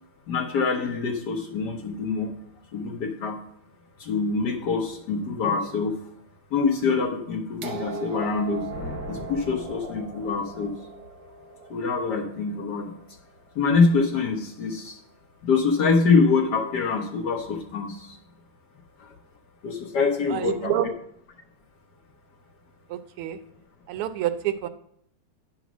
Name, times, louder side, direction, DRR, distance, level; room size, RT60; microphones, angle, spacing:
voice 1, 0.3-2.3 2.7-3.4 4.0-6.0 6.5-8.7 9.1-10.7 11.7-12.9 13.5-15.0 15.4-18.2 19.0-19.1 19.6-20.7, left 4 dB, 60° left, 3 dB, 1.2 m, -25 dB
sound 1, 7.6-13.5 14.6-14.7, right 4 dB, 60° right, 1.2 m, -39 dB
Thunder, 8.2-10.8, left 1 dB, 35° left, 1.7 m, -41 dB
voice 2, 20.3-20.9 22.9-23.4 23.9-24.7, right 11 dB, 85° right, 10 dB, 1.6 m, -28 dB
10.0 x 4.0 x 6.0 m, 0.71 s
omnidirectional pair, 2.4 m